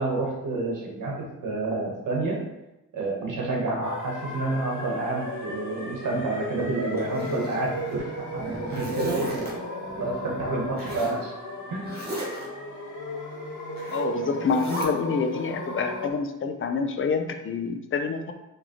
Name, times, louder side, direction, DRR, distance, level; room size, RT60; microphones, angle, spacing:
voice 1, 0.0-2.4 2.9-9.6 9.9-11.3 11.7-11.9, right 2 dB, 80° right, -1 dB, 1.1 m, -29 dB
sound 1, 3.8-16.1, left 1 dB, 70° left, 1.1 m, -35 dB
Zipper (clothing), 7.0-8.0 8.4-9.5 10.8-11.2 11.8-12.5 13.8-14.1 14.5-14.9, equal, 30° right, 1.2 m, -35 dB
voice 2, 13.9-18.3, left 5 dB, 40° left, 6 dB, 0.5 m, -27 dB
5.1 x 2.9 x 2.9 m, 0.95 s
wide cardioid pair, 110°, 31 cm